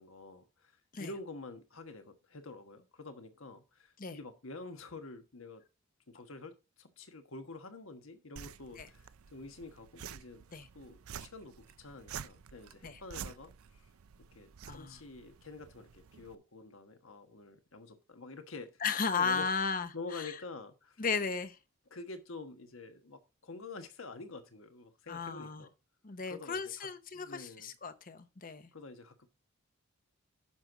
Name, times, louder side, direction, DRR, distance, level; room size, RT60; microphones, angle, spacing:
voice 1, 0.0-5.6 6.1-10.4 10.7-13.9 14.3-18.8 19.1-19.5 19.9-21.0 21.9-25.7 26.3-26.9 27.1-27.7 28.7-29.3, left 3 dB, 70° left, 1.3 m, -48 dB
sound 1, 8.4-16.4, right 8 dB, 85° right, 0.5 m, -49 dB
voice 2, 14.7-15.0 18.8-20.3 21.0-21.6 25.1-25.6 26.0-28.7, left 5 dB, 40° left, 0.8 m, -35 dB
10.5 x 6.2 x 3.8 m
head